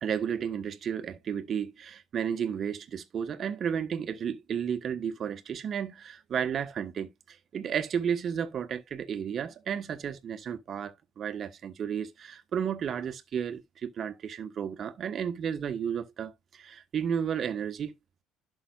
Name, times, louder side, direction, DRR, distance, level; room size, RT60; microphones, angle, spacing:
voice 1, 0.0-17.9, right 8 dB, 45° right, 1.3 m, -33 dB
11.5 x 6.0 x 2.5 m
supercardioid pair, 75°, 0 cm